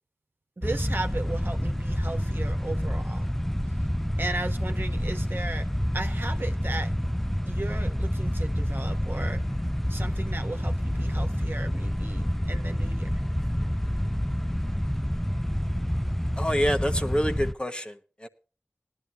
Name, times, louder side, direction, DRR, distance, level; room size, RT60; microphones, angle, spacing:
sound 1, 0.6-17.5, equal, 5° left, 0.6 m, -28 dB
voice 1, 0.6-3.4 4.2-5.7 5.9-6.9 7.4-9.4 9.9-13.1, right 2 dB, 50° right, 1.4 m, -36 dB
voice 2, 16.4-18.3, equal, 20° left, 1.3 m, -27 dB
19.0 x 11.0 x 2.8 m
wide cardioid pair, 45°, 5 cm